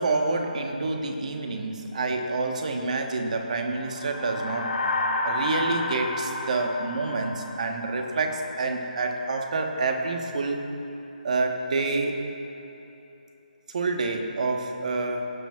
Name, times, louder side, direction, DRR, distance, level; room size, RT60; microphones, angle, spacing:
voice 1, 0.0-4.8 5.2-10.6 11.2-12.2 13.7-15.3, right 3 dB, 50° right, 3 dB, 1.2 m, -28 dB
sound 1, 3.8-8.4, left 2 dB, 75° left, 1.7 m, -30 dB
17.0 x 10.5 x 2.4 m, 3.0 s
hypercardioid pair, 160°, 5 cm